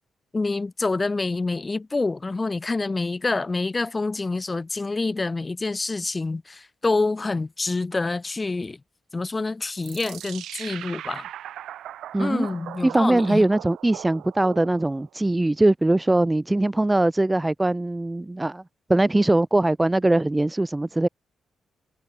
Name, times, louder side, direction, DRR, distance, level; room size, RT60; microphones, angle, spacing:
voice 1, 0.3-8.8 9.1-11.3 12.2-13.4, left 3 dB, 25° left, 3.0 m, -27 dB
sound 1, 9.8-15.1, right 12 dB, 85° right, 3.1 m, -39 dB
voice 2, 12.1-12.5 12.8-18.6 18.9-21.1, right 2 dB, 15° right, 0.4 m, -21 dB
cardioid pair, 75°, 0 cm